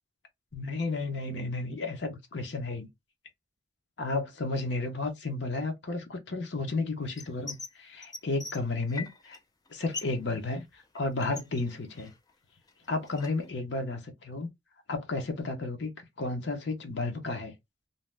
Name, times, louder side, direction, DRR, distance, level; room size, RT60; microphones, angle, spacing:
voice 1, 0.5-2.9 4.0-9.4 9.7-12.1 12.9-14.5 14.9-15.9 16.2-17.5, left 3 dB, 70° left, 0.7 m, -32 dB
sound 1, 7.2-7.7 8.0-9.4 9.7-10.2 10.5-12.3 12.7-13.5, left 3 dB, 20° left, 0.4 m, -42 dB
2.7 x 2.1 x 3.2 m
head